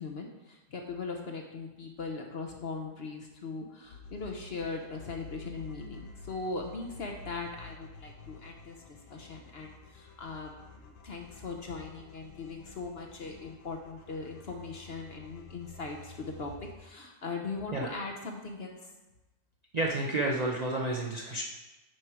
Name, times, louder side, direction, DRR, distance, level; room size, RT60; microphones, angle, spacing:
voice 1, 0.0-8.8 9.1-18.9, left 4 dB, 50° left, 2 dB, 0.8 m, -40 dB
sound 1, 3.8-16.7, left 3 dB, 85° left, 1.5 m, -50 dB
voice 2, 19.7-21.4, right 2 dB, 75° right, -2 dB, 0.3 m, -30 dB
9.1 x 4.5 x 4.8 m, 1.1 s
omnidirectional pair, 1.8 m